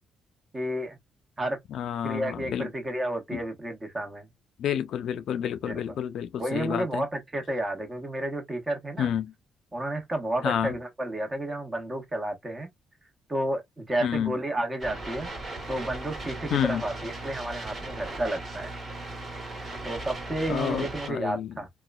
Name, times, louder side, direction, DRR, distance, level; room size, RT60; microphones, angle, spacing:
voice 1, 0.5-1.0 1.4-1.6 2.0-4.3 5.6-5.8 6.4-9.1 9.7-12.7 13.3-15.3 15.7-18.7 19.8-21.7, right 1 dB, 25° right, 1.1 m, -31 dB
voice 2, 1.7-2.7 3.3-3.4 4.6-7.0 9.0-9.3 10.4-10.7 14.0-14.4 16.5-16.8 20.5-21.6, left 9 dB, 70° left, 0.3 m, -29 dB
sound 1, 14.8-21.1, right 2 dB, 40° right, 1.4 m, -37 dB
2.9 x 2.2 x 2.3 m
cardioid pair, 90°, 0 cm